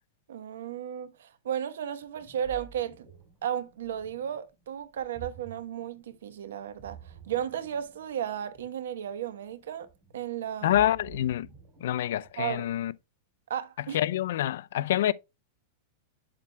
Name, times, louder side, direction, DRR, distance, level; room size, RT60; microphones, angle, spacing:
voice 1, 0.3-3.1 3.4-9.9 10.1-10.8 12.4-12.6 13.5-14.0, right 9 dB, 90° right, 1.0 m, -34 dB
Ocean, 2.0-12.8, right 6 dB, 20° right, 4.9 m, -51 dB
voice 2, 10.6-11.5 11.8-12.9 13.9-15.1, left 12 dB, 75° left, 0.4 m, -26 dB
8.6 x 7.4 x 2.2 m
supercardioid pair, 150°, 0 cm